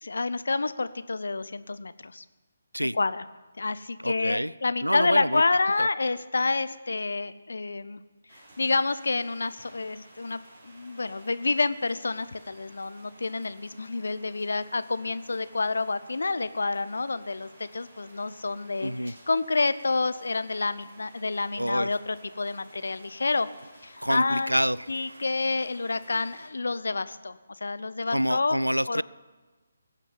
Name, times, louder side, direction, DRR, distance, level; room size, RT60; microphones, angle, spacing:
voice 1, 0.0-2.2 2.9-3.2 3.6-8.0 8.6-23.5 23.8-24.5 24.9-28.6 28.9-29.0, left 3 dB, 60° left, 0.7 m, -28 dB
voice 2, 4.0-4.5 4.8-5.4 5.8-5.9 18.8-19.2 21.6-21.9 24.0-25.2 28.1-29.0, equal, 90° right, 0.3 m, -27 dB
sound 1, 8.3-26.5, right 1 dB, 30° right, 4.0 m, -54 dB
20.5 x 8.3 x 5.3 m
figure-of-eight pair, 145°, 0 cm